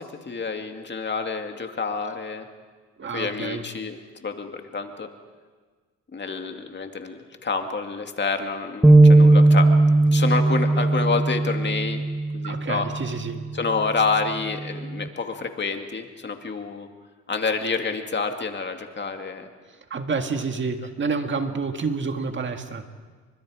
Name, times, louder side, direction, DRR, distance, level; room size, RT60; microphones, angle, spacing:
voice 1, 0.0-2.5 3.1-5.1 6.1-9.7 10.1-12.0 12.3-12.9 13.5-16.9 17.3-19.5, left 4 dB, 35° left, 5 dB, 2.2 m, -28 dB
voice 2, 3.0-3.6 12.4-13.4 19.9-22.9, right 4 dB, 40° right, 6 dB, 1.9 m, -28 dB
sound 1, 8.8-13.1 13.6-13.8 14.6-15.1, right 2 dB, 5° right, 1.3 m, -17 dB
30.0 x 24.5 x 5.0 m, 1.5 s
cardioid pair, 90°, 30 cm